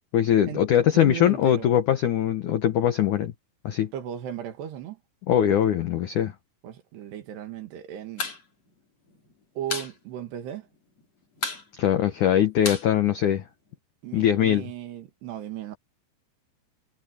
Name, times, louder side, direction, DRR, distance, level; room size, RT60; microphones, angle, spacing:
voice 1, 0.1-3.3 3.6-3.9 5.3-6.3 11.8-13.4 14.1-14.6, left 10 dB, 90° left, 1.7 m, -21 dB
voice 2, 0.9-1.7 3.9-5.0 6.6-8.3 9.6-10.7 14.0-15.8, right 10 dB, 70° right, 3.8 m, -36 dB
sound 1, 8.0-8.4 8.7-8.8 9.1-9.9 10.3-10.4 10.6-11.0 11.4-13.7, left 4 dB, 35° left, 5.1 m, -33 dB
omnidirectional pair, 5.3 m